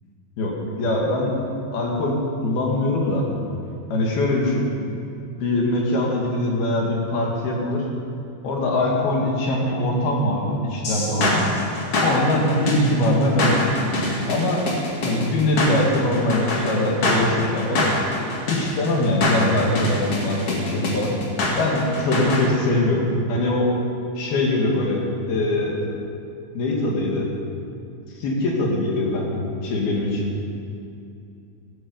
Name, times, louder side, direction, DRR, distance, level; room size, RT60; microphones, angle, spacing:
voice 1, 0.8-1.3 1.7-3.2 3.9-4.7 5.4-7.9 8.4-11.5 12.0-13.7 14.3-14.6 15.0-17.8 18.5-21.1 21.6-23.7 24.2-25.8 26.5-27.3 28.2-30.3, left 1 dB, 60° left, -2 dB, 3.5 m, -22 dB
sound 1, 10.8-22.4, left 2 dB, 40° left, 2.3 m, -24 dB
17.5 x 13.0 x 5.4 m, 2.6 s
omnidirectional pair, 5.7 m